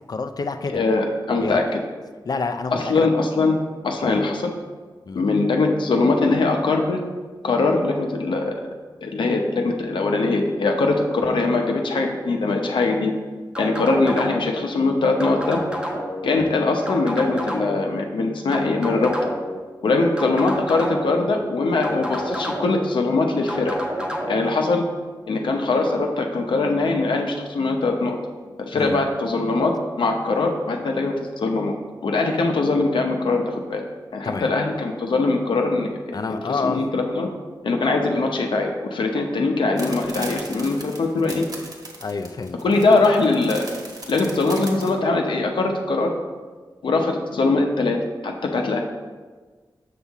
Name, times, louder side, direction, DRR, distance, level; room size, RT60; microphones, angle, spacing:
voice 1, 0.1-0.8 1.4-1.6 2.3-3.1 4.0-4.2 5.1-5.2 16.4-16.5 28.7-29.0 34.2-34.5 36.1-36.8 42.0-42.6, left 4 dB, 55° left, 7 dB, 0.5 m, -28 dB
voice 2, 0.7-1.6 2.7-3.6 3.8-4.5 5.1-7.0 7.4-8.6 9.0-13.1 13.6-15.6 16.2-19.1 19.8-23.8 24.3-24.8 25.3-28.2 28.6-31.8 32.0-33.8 34.1-37.3 37.6-41.5 42.6-43.7 44.1-46.1 46.8-48.0 48.2-48.8, left 3 dB, 85° left, 2 dB, 0.8 m, -21 dB
sound 1, 13.5-14.6 15.2-16.2 16.9-17.9 18.5-19.6 20.2-21.2 21.8-22.9 23.5-24.3, equal, 10° right, 1.0 m, -29 dB
sound 2, 39.8-44.9, right 2 dB, 55° right, 1.1 m, -37 dB
6.9 x 5.6 x 3.5 m, 1.4 s
wide cardioid pair, 85°, 8 cm